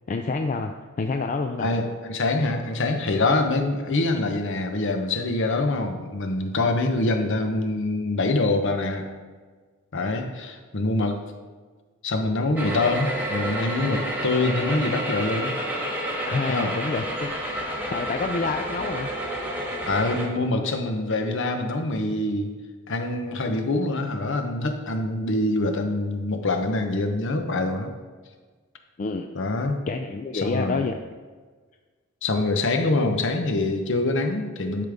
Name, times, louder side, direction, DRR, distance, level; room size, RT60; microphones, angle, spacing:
voice 1, 0.1-1.7 16.3-17.3 17.9-19.1 29.0-29.3 29.9-31.0, left 3 dB, 35° left, 5 dB, 0.3 m, -28 dB
voice 2, 1.6-9.1 9.9-11.2 12.0-15.5 16.5-16.7 19.9-22.5 22.9-27.9 29.3-29.8 30.3-30.8 32.2-34.8, left 2 dB, 60° left, 5 dB, 0.9 m, -25 dB
sound 1, 12.6-20.2, equal, 10° right, 1.4 m, -29 dB
12.0 x 5.1 x 3.5 m, 1.4 s
head